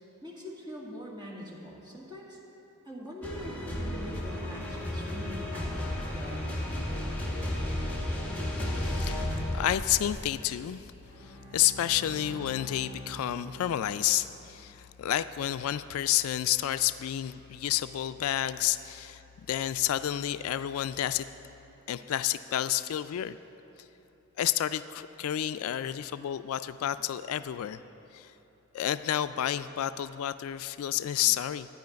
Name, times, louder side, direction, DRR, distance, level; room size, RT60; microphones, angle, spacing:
voice 1, 0.2-2.4 2.8-6.5, equal, 20° right, -4 dB, 1.9 m, -43 dB
sound 1, 3.2-10.2, left 1 dB, 5° left, 1.5 m, -33 dB
voice 2, 8.7-9.2 9.5-10.8 11.2-19.2 19.5-21.3 21.9-23.4 24.4-27.8 28.1-28.3 28.7-31.7, left 12 dB, 75° left, 14 dB, 0.3 m, -30 dB
Bowed string instrument, 11.0-14.6, right 1 dB, 50° right, 3.1 m, -46 dB
12.0 x 9.3 x 5.2 m, 3.0 s
head